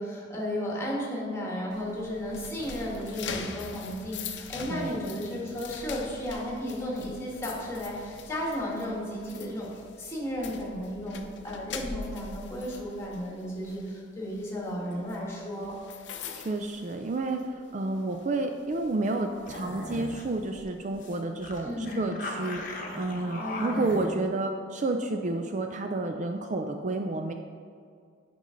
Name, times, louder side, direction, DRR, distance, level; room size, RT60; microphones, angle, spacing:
voice 1, 0.0-9.7 10.0-15.8 21.6-22.1 23.4-23.9, equal, 15° left, -4 dB, 1.7 m, -34 dB
sound 1, 1.7-17.6 18.0-18.2 18.7-20.4, left 5 dB, 70° left, 0.6 m, -43 dB
voice 2, 16.4-27.3, right 2 dB, 40° right, 5 dB, 0.4 m, -30 dB
sound 2, 19.5-20.3 20.6-20.7 21.0-21.2 21.4-24.1, left 2 dB, 45° left, 1.0 m, -38 dB
9.3 x 5.4 x 3.8 m, 2.2 s
head